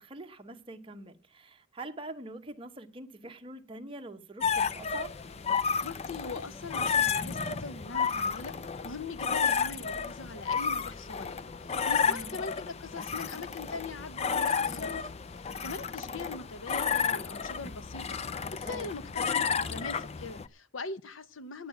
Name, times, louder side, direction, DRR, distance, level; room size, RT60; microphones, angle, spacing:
voice 1, 0.0-5.2 12.0-12.4 18.6-18.9, right 1 dB, 25° right, 1.0 m, -44 dB
sound 1, 4.4-20.5, left 6 dB, 30° left, 0.5 m, -32 dB
voice 2, 5.8-21.7, left 3 dB, 85° left, 1.0 m, -42 dB
9.3 x 8.8 x 8.0 m
head